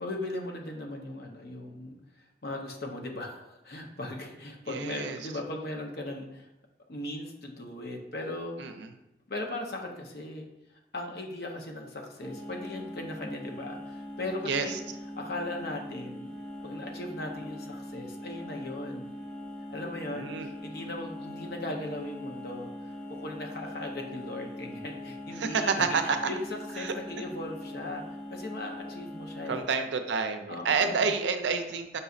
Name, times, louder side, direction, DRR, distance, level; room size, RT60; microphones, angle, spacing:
voice 1, 0.0-6.5 6.9-8.7 9.3-10.5 10.9-14.8 15.2-16.3 16.6-19.1 19.7-22.7 23.1-28.0 28.3-29.7 30.5-31.1, left 1 dB, 55° left, 2 dB, 0.7 m, -38 dB
voice 2, 4.7-5.2 8.6-8.9 14.4-14.8 20.1-20.5 25.4-26.3 26.8-26.9 29.5-32.0, right 5 dB, 80° right, 7 dB, 0.4 m, -29 dB
sound 1, 12.2-29.6, left 1 dB, 5° left, 0.9 m, -41 dB
5.4 x 3.9 x 2.4 m, 0.87 s
head